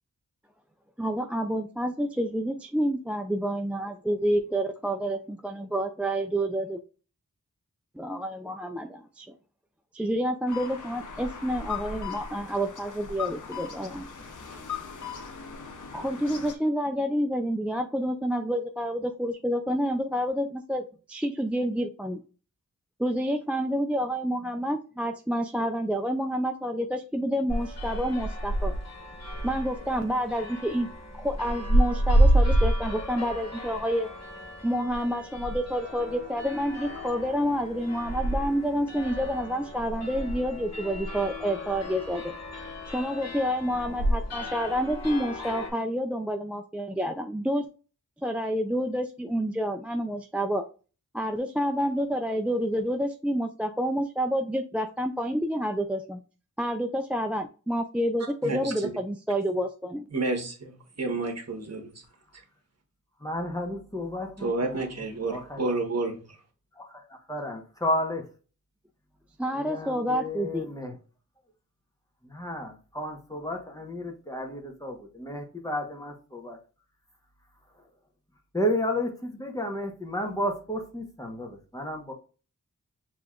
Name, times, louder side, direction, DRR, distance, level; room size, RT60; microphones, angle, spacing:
voice 1, 1.0-6.8 8.0-9.3 9.9-14.1 14.5-14.6 15.9-22.2 23.0-28.8 29.4-30.9 31.1-34.1 34.6-42.3 42.9-47.7 48.2-50.7 51.1-56.2 56.6-60.1 69.4-70.7, equal, 5° right, 4 dB, 0.3 m, -29 dB
sound 1, 10.5-16.5, left 6 dB, 70° left, 0.8 m, -39 dB
sound 2, 27.5-45.7, right 1 dB, 55° left, 1.4 m, -29 dB
voice 2, 58.4-58.9 60.1-61.9 62.3-62.4 64.4-66.4, right 3 dB, 50° right, 2 dB, 1.4 m, -30 dB
voice 3, 63.2-65.6 66.8-68.2 69.5-71.0 72.2-76.6 78.5-82.1, left 1 dB, 10° left, 2 dB, 1.0 m, -32 dB
6.8 x 2.9 x 2.4 m, 0.36 s
wide cardioid pair, 90°, 32 cm